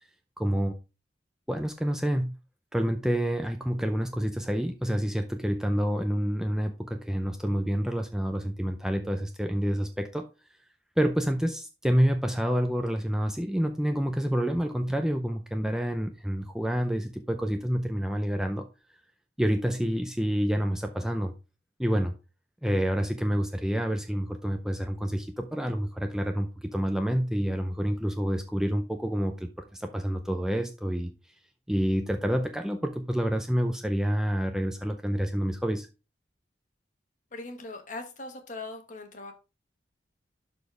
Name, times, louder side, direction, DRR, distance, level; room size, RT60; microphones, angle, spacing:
voice 1, 0.4-0.7 1.5-2.3 2.7-10.3 11.0-18.7 19.4-21.3 21.8-22.1 22.6-31.1 31.7-35.9, equal, 5° right, 0.5 m, -28 dB
voice 2, 37.3-39.3, left 2 dB, 45° left, 1.4 m, -40 dB
11.5 x 4.3 x 3.3 m
head